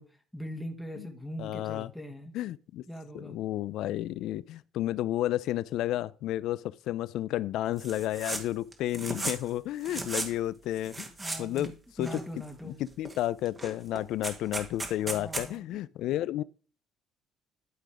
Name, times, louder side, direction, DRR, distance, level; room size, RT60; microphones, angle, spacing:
voice 1, 0.0-2.4 2.9-3.4 11.2-12.8 15.1-15.8 16.1-16.2, equal, 5° left, 1.5 m, -41 dB
voice 2, 1.4-1.9 2.3-2.8 3.1-11.1 11.4-11.7 12.0-12.2 12.6-16.4, left 13 dB, 75° left, 0.4 m, -32 dB
sound 1, 7.8-8.4 8.7-9.5 9.8-10.3 10.8-11.7 12.0-12.6 13.0-13.2 13.5-15.5, right 2 dB, 20° right, 1.7 m, -36 dB
11.5 x 4.0 x 4.9 m
cardioid pair, 100°, 0 cm